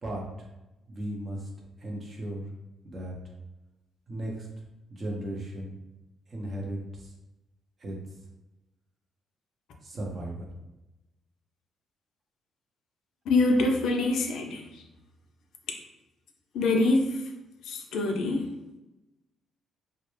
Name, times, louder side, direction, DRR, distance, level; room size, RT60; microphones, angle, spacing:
voice 1, 0.9-1.5 1.8-2.5 2.8-3.1 4.1-4.5 4.9-5.8 6.3-7.1 7.8-8.0 9.8-10.4, right 1 dB, 40° right, -1 dB, 0.7 m, -36 dB
voice 2, 13.3-14.8 16.5-17.2 17.6-18.5, left 2 dB, 80° left, 2 dB, 0.4 m, -25 dB
2.2 x 2.0 x 3.1 m, 0.98 s
cardioid pair, 90°, 0 cm